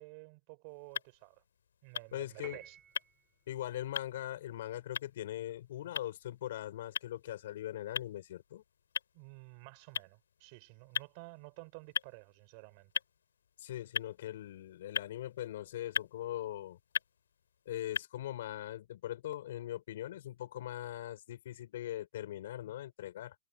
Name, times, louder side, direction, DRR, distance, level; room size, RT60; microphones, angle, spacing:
voice 1, 0.0-1.4 1.8-2.8 9.1-12.9, right 29 dB, 25° right, 4.5 m, -52 dB
sound 1, 0.7-18.0, left 8 dB, 85° left, 5.5 m, -43 dB
voice 2, 2.1-2.6 3.5-8.6 13.6-16.8 17.7-23.3, left 13 dB, 45° left, 5.9 m, -41 dB
Piano, 2.4-3.3, right 8 dB, 10° right, 3.4 m, -52 dB
hypercardioid pair, 180°, 0 cm